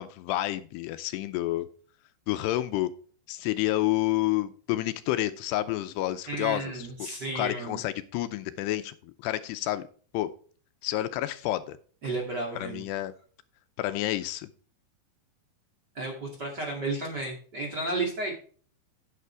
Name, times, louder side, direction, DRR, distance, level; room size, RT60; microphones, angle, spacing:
voice 1, 0.0-1.7 2.3-2.9 3.3-6.9 7.4-9.9 10.1-10.3 10.8-11.8 12.6-13.1 13.8-14.5, left 15 dB, 80° left, 11 dB, 2.7 m, -29 dB
voice 2, 6.3-7.8 12.0-12.8 15.9-18.4, right 2 dB, 30° right, -1 dB, 2.2 m, -33 dB
9.4 x 9.1 x 3.4 m, 0.43 s
omnidirectional pair, 4.9 m